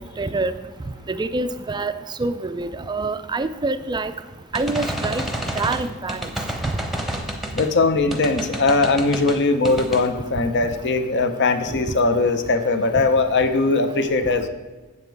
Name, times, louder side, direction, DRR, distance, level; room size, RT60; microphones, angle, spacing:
voice 1, 0.2-0.5 1.2-1.9 2.2-4.1 4.5-5.2 5.6-6.2, right 3 dB, 20° right, 12 dB, 0.4 m, -25 dB
sound 1, 4.5-7.7 8.1-9.4 9.6-10.1, right 1 dB, ahead, 0.9 m, -29 dB
voice 2, 7.5-14.5, left 3 dB, 55° left, 9 dB, 0.7 m, -20 dB
7.9 x 7.3 x 4.6 m, 1.3 s
head